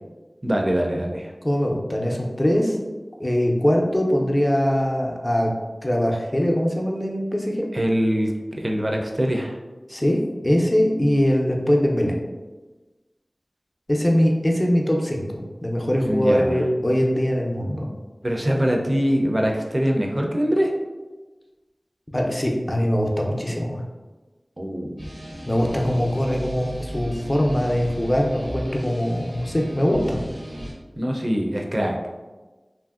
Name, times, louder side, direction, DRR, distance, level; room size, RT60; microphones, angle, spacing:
voice 1, 0.4-1.3 7.7-9.6 16.0-16.6 18.2-20.7 24.6-25.0 31.0-32.0, equal, 40° right, 1 dB, 0.4 m, -23 dB
voice 2, 1.4-2.8 3.2-5.5 5.8-7.7 9.9-12.2 13.9-17.9 22.1-23.8 25.5-30.2, equal, 30° left, 0 dB, 0.5 m, -22 dB
sound 1, 25.0-30.7, equal, 85° right, 0.7 m, -35 dB
2.9 x 2.5 x 2.4 m, 1.2 s
wide cardioid pair, 40°, 0 cm